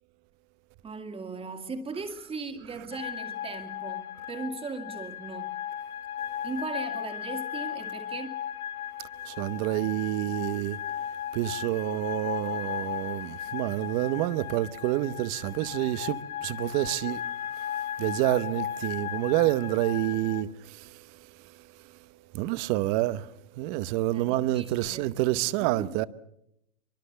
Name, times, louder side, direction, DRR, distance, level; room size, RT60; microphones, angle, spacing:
voice 1, 0.8-5.6 6.4-8.4 24.1-26.0, right 4 dB, 15° right, 2.1 m, -38 dB
sound 1, 2.9-20.4, left 10 dB, 80° left, 1.5 m, -36 dB
voice 2, 9.2-10.8 11.3-17.2 18.0-21.0 22.3-23.3 23.6-26.0, right 16 dB, 35° right, 0.9 m, -28 dB
24.0 x 23.0 x 6.8 m
hypercardioid pair, 140°, 43 cm